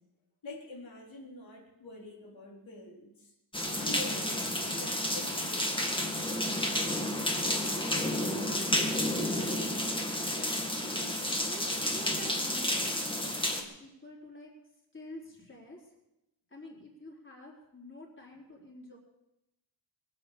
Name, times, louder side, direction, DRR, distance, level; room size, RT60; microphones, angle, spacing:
voice 1, 0.4-3.3 3.8-6.1, left 1 dB, 85° left, -3 dB, 4.3 m, -46 dB
sound 1, 3.5-13.6, left 1 dB, 10° left, 1.9 m, -31 dB
voice 2, 7.6-8.7 9.0-10.5 11.4-14.5 14.9-15.8 16.5-19.0, equal, 25° left, -3 dB, 4.2 m, -48 dB
22.5 x 8.9 x 7.1 m, 0.90 s
wide cardioid pair, 160°, 45 cm